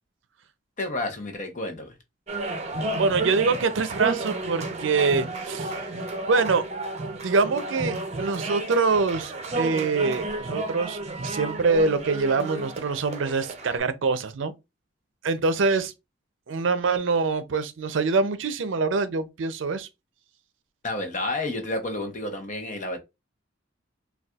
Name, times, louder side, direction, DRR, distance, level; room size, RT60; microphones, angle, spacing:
voice 1, 0.8-2.0 20.8-23.0, left 2 dB, 40° left, 0.8 m, -30 dB
sound 1, 2.3-13.8, right 2 dB, 35° right, 0.6 m, -32 dB
voice 2, 2.9-5.8 6.3-6.6 7.2-11.0 11.2-14.5 15.2-15.9 16.5-19.9, right 4 dB, 80° right, 0.5 m, -24 dB
4.0 x 2.3 x 2.3 m
head